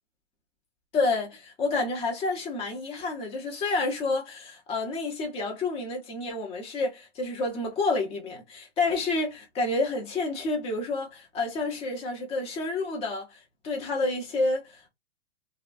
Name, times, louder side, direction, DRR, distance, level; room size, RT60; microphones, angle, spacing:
voice 1, 0.9-13.4 13.6-14.9, left 3 dB, 15° left, 0.7 m, -29 dB
2.8 x 2.2 x 2.5 m
hypercardioid pair, 140°, 36 cm